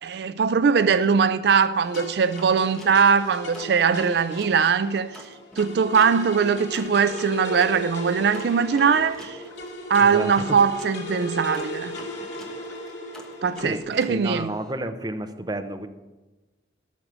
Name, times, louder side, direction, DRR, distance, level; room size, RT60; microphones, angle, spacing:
voice 1, 0.0-9.4 9.9-11.9 13.4-14.5, right 6 dB, 65° right, 0.4 m, -21 dB
sound 1, 1.8-13.8, left 1 dB, 75° left, 2.3 m, -36 dB
sound 2, 1.9-4.6 5.1-11.0 11.5-14.7, left 1 dB, 5° left, 1.3 m, -47 dB
voice 2, 10.0-10.3 13.6-13.8 14.1-15.9, right 1 dB, 20° right, 0.7 m, -30 dB
13.5 x 6.2 x 7.5 m
head